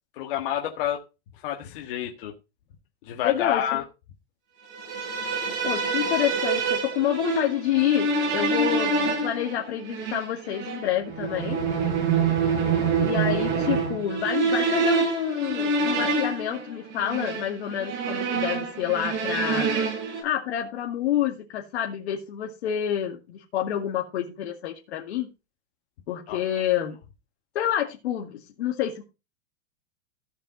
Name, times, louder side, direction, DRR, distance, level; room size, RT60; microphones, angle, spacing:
voice 1, 0.2-1.0 1.4-2.3 3.0-3.8 26.3-26.4, left 11 dB, 50° left, 2 dB, 1.6 m, -28 dB
voice 2, 3.2-3.8 5.6-11.6 13.0-19.7 20.2-25.3 26.1-27.0 27.5-29.0, left 11 dB, 65° left, 0 dB, 2.3 m, -28 dB
sound 1, 4.7-20.2, right 4 dB, 40° right, 6.6 m, -26 dB
14.5 x 5.5 x 5.2 m, 0.29 s
supercardioid pair, 175°, 35 cm